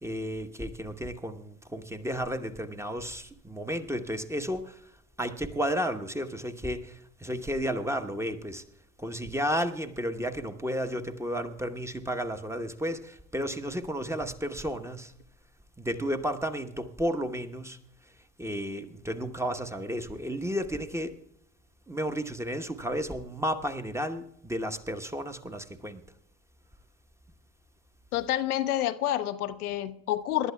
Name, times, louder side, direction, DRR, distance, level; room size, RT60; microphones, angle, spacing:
voice 1, 0.0-4.9 5.2-8.6 9.0-15.1 15.8-17.8 18.4-21.2 21.9-26.0, equal, 5° right, 1.0 m, -32 dB
voice 2, 28.1-30.5, left 12 dB, 75° left, 0.7 m, -28 dB
27.0 x 12.0 x 2.3 m
figure-of-eight pair, 55°, 44 cm